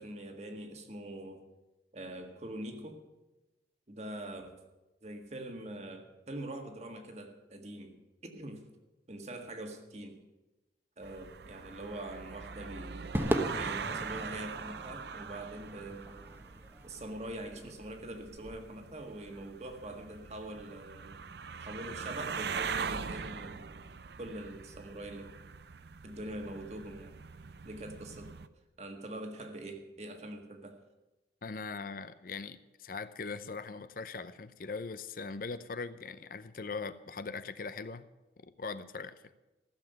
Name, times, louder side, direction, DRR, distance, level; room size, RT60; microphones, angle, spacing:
voice 1, 0.0-1.4 1.9-3.0 3.9-4.6 5.0-8.7 9.1-10.2 11.0-13.1 13.5-16.3 16.8-21.2 21.6-23.8 24.2-25.3 26.0-27.1 27.6-28.4 28.8-30.8, right 1 dB, 40° right, 4 dB, 1.7 m, -44 dB
sound 1, 11.0-28.5, right 6 dB, 70° right, 0.6 m, -42 dB
Crowd / Fireworks, 13.1-17.6, right 1 dB, 10° right, 1.1 m, -37 dB
voice 2, 31.4-38.0 38.4-39.3, left 4 dB, 50° left, 13 dB, 0.6 m, -41 dB
15.0 x 7.4 x 9.1 m, 1.0 s
head